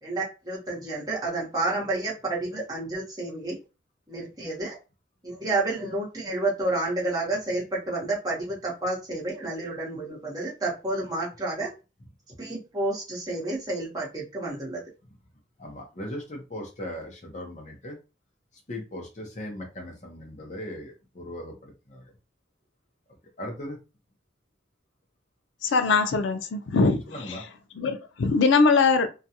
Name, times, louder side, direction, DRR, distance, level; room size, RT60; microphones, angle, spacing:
voice 1, 0.0-3.6 4.1-4.8 5.2-11.7 12.4-14.8, right 2 dB, 20° right, 1.0 m, -30 dB
voice 2, 15.6-18.0 18.7-22.1 23.4-23.8 27.1-27.4, left 1 dB, 40° left, 0.7 m, -38 dB
voice 3, 25.6-27.0 27.3-27.4 27.8-29.1, left 4 dB, 85° left, 0.4 m, -21 dB
2.4 x 2.2 x 2.8 m
head